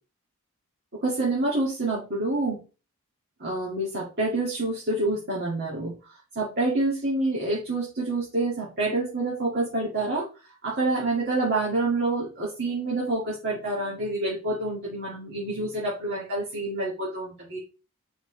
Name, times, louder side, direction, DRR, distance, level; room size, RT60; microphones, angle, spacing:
voice 1, 1.0-2.6 3.4-5.9 6.4-10.2 10.6-17.6, right 2 dB, 45° right, -5 dB, 2.2 m, -27 dB
7.5 x 5.4 x 3.3 m, 0.32 s
head